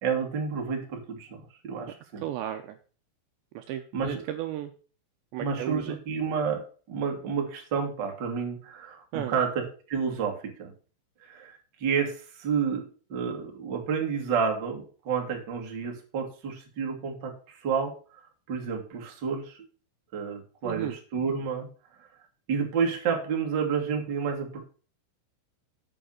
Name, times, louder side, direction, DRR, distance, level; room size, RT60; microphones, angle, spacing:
voice 1, 0.0-2.2 3.9-4.2 5.4-10.7 11.2-18.2 18.5-19.6 20.1-21.7 22.5-24.6, right 6 dB, 35° right, 2 dB, 1.8 m, -30 dB
voice 2, 2.2-2.8 3.5-4.7 5.3-6.0 9.1-9.3 20.6-21.0, right 12 dB, 80° right, 6 dB, 2.7 m, -34 dB
8.8 x 7.0 x 6.5 m, 0.39 s
omnidirectional pair, 5.6 m